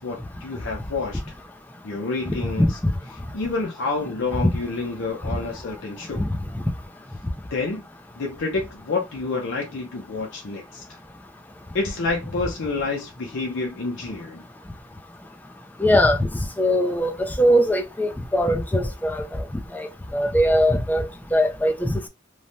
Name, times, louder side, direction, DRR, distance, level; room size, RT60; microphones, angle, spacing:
voice 1, 0.0-1.3 1.8-2.8 3.3-6.2 7.5-7.8 8.2-11.0 11.7-14.4, left 3 dB, 65° left, 0.6 m, -28 dB
voice 2, 2.3-2.9 15.8-16.3 16.6-19.4 19.7-21.9, equal, 10° left, 0.4 m, -21 dB
3.2 x 2.1 x 2.6 m
head